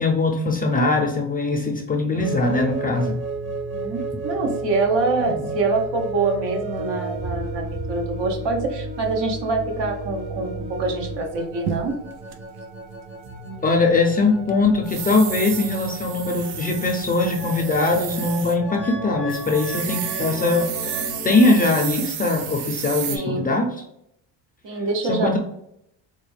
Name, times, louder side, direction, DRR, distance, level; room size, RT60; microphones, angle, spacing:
voice 1, 0.0-3.2 5.3-5.4 13.6-20.7 21.2-23.7 25.1-25.4, left 3 dB, 20° left, 2 dB, 0.4 m, -21 dB
sound 1, 2.1-21.7, right 2 dB, 25° right, 0.9 m, -33 dB
voice 2, 3.7-12.0 23.1-23.5 24.6-25.4, right 3 dB, 65° right, 2 dB, 1.0 m, -25 dB
sound 2, 11.3-12.3 14.5-18.6 18.9-19.0 19.3-23.2, right 8 dB, 90° right, 0.6 m, -32 dB
4.0 x 2.2 x 3.2 m, 0.75 s
cardioid pair, 115°, 45 cm